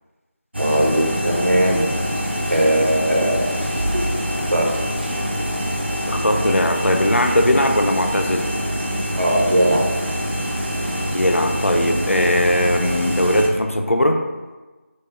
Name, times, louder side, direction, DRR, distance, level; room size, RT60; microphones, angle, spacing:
sound 1, 0.5-13.5, equal, 55° right, 0.8 m, -25 dB
voice 1, 0.6-1.9 2.5-3.4 4.5-4.7 9.2-9.8, right 1 dB, 70° right, -2 dB, 1.3 m, -18 dB
voice 2, 6.1-8.5 11.1-14.2, left 1 dB, 80° left, 4 dB, 0.6 m, -19 dB
4.7 x 2.4 x 4.4 m, 1.2 s
figure-of-eight pair, 170°, 7 cm